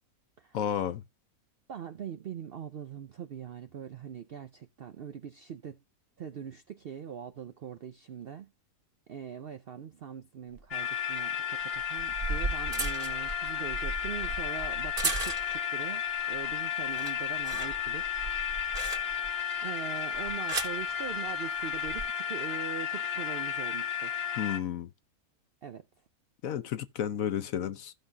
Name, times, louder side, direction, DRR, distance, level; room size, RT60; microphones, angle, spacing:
voice 1, 0.5-1.0 24.4-24.9 26.4-27.9, left 9 dB, 65° left, 1.1 m, -32 dB
voice 2, 1.7-5.8 6.2-8.5 9.1-16.0 16.3-18.1 19.6-24.1 25.6-25.8, right 8 dB, 65° right, 0.6 m, -42 dB
sound 1, 10.5-10.6 11.8-15.8 16.2-16.5 16.8-19.4 20.1-20.8 21.7-22.0, right 3 dB, 35° right, 2.0 m, -36 dB
sound 2, 10.7-24.6, left 8 dB, 45° left, 1.0 m, -33 dB
15.0 x 5.6 x 2.2 m
omnidirectional pair, 1.6 m